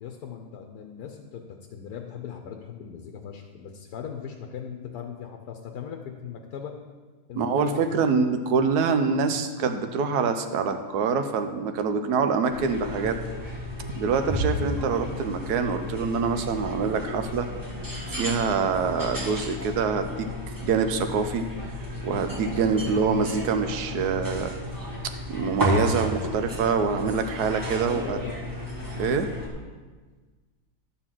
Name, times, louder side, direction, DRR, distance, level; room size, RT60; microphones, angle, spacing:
voice 1, 0.0-6.8 7.3-8.3 9.2-9.4 23.1-23.3 27.8-28.4, left 7 dB, 80° left, 3 dB, 1.2 m, -39 dB
voice 2, 7.3-13.2 13.9-17.5 18.1-20.3 20.6-21.4 22.0-24.5 25.0-28.2 29.0-29.3, right 5 dB, 85° right, 8 dB, 1.3 m, -25 dB
sound 1, 12.5-29.5, left 1 dB, 15° right, 1.4 m, -33 dB
11.5 x 4.2 x 7.5 m, 1.4 s
omnidirectional pair, 1.7 m